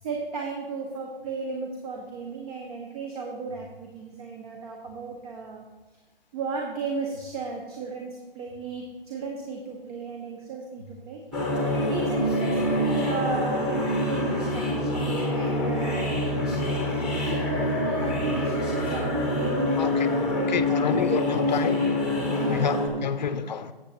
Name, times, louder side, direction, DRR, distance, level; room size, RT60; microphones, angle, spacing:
voice 1, 0.0-5.6 6.3-11.2 11.7-16.1 17.1-21.5 22.4-23.3, right 4 dB, 40° right, 1.5 m, -35 dB
sound 1, 11.3-22.9, left 1 dB, 5° right, 1.3 m, -26 dB
voice 2, 19.8-20.1 20.5-22.1 22.4-23.7, left 7 dB, 50° left, 0.6 m, -29 dB
13.5 x 7.9 x 2.9 m
hypercardioid pair, 150°, 29 cm